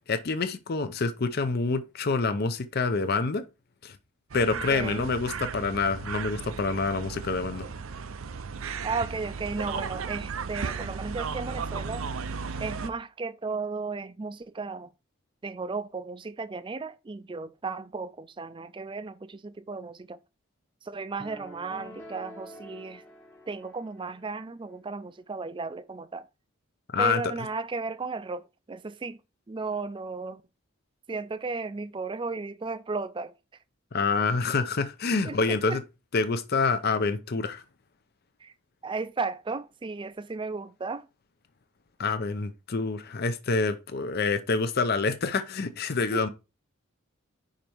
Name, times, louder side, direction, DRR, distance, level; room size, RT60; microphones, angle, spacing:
voice 1, 0.1-3.5 3.8-4.0 4.3-7.7 26.9-27.2 33.9-35.8 36.1-37.6 42.0-46.3, left 4 dB, 50° left, 0.6 m, -27 dB
sound 1, 4.3-12.9, right 5 dB, 75° right, 0.6 m, -35 dB
voice 2, 4.7-5.1 8.8-12.1 12.6-14.9 15.4-20.2 20.8-23.0 23.5-26.3 27.0-29.2 29.5-30.4 31.1-33.3 35.2-35.8 38.4-38.5 38.8-41.1 46.1-46.3, right 4 dB, 25° right, 0.4 m, -35 dB
sound 2, 21.2-24.4, equal, 10° left, 1.1 m, -47 dB
5.2 x 5.1 x 4.5 m
head